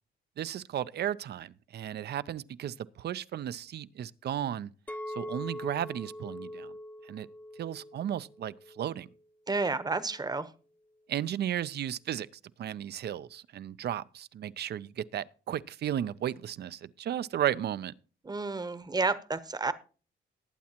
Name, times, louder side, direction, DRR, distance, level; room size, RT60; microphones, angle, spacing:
voice 1, 0.4-4.7 5.1-6.7 7.1-7.3 7.6-9.1 11.1-12.3 12.6-17.9, right 10 dB, 55° right, 0.5 m, -34 dB
Chink clink, 4.9-9.2 9.7-10.1, left 1 dB, 10° left, 0.8 m, -43 dB
voice 2, 9.5-10.5 18.2-19.7, right 3 dB, 20° right, 0.9 m, -30 dB
19.5 x 8.4 x 2.9 m
cardioid pair, 90°, 20 cm